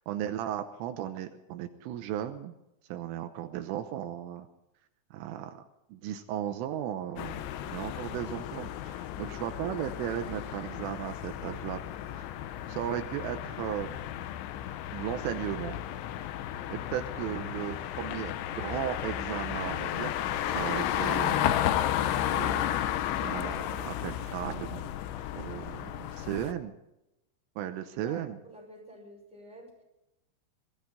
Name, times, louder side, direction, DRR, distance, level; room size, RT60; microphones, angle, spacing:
voice 1, 0.1-2.6 2.9-4.5 5.1-5.6 5.9-11.8 12.1-12.3 12.7-13.9 14.9-15.8 16.7-21.7 22.3-22.8 23.2-24.9 25.3-26.7 27.6-28.4, right 11 dB, 80° right, 7 dB, 3.4 m, -36 dB
sound 1, 7.2-26.5, left 11 dB, 80° left, 3.0 m, -33 dB
voice 2, 28.5-29.7, equal, ahead, -1 dB, 5.2 m, -48 dB
23.0 x 15.0 x 4.1 m, 0.90 s
omnidirectional pair, 5.9 m